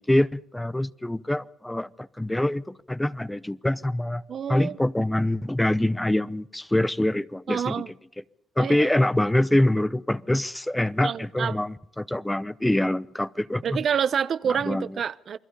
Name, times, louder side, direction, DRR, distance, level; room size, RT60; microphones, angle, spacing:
voice 1, 0.0-4.2 4.5-7.7 8.6-13.6 14.6-14.9, left 1 dB, 10° left, 0.8 m, -25 dB
voice 2, 4.3-4.8 7.5-7.9 8.6-8.9 11.0-11.6 13.6-15.4, right 8 dB, 55° right, 0.9 m, -27 dB
28.5 x 22.0 x 5.4 m
cardioid pair, 90°, 0 cm